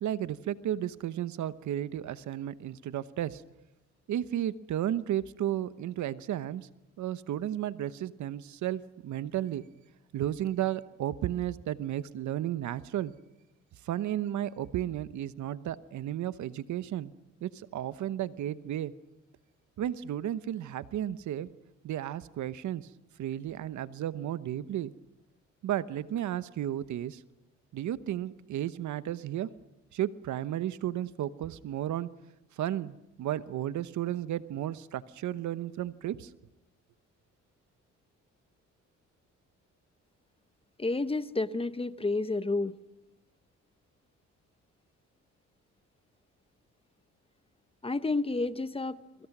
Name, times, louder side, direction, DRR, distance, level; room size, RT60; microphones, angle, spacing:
voice 1, 0.0-3.4 4.1-6.7 7.0-9.6 10.1-13.1 13.8-17.1 17.4-18.9 19.8-21.5 21.8-22.9 23.2-24.9 25.6-27.2 27.7-29.5 29.9-32.1 32.6-36.3, right 12 dB, 70° right, 15 dB, 1.0 m, -33 dB
voice 2, 40.8-42.8 47.8-49.3, left 3 dB, 20° left, 13 dB, 1.0 m, -30 dB
30.0 x 24.0 x 6.1 m, 0.91 s
cardioid pair, 90°, 30 cm